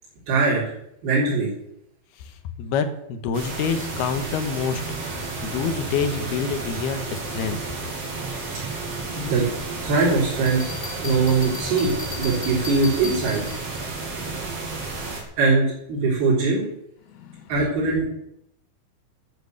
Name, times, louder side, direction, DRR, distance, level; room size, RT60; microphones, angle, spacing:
voice 1, 0.3-0.7 1.0-1.5 9.1-9.5 9.8-10.6 11.0-11.9 12.2-13.4 15.4-16.7 17.5-18.1, right 3 dB, 80° right, -8 dB, 6.0 m, -21 dB
voice 2, 2.2-5.2 5.4-7.6 17.1-17.5, left 6 dB, 85° left, 9 dB, 3.2 m, -27 dB
sound 1, 3.3-15.2, right 3 dB, 40° right, 3.6 m, -32 dB
Bell, 10.5-13.8, left 4 dB, 35° left, 1.0 m, -37 dB
12.5 x 9.0 x 8.1 m, 0.77 s
omnidirectional pair, 4.5 m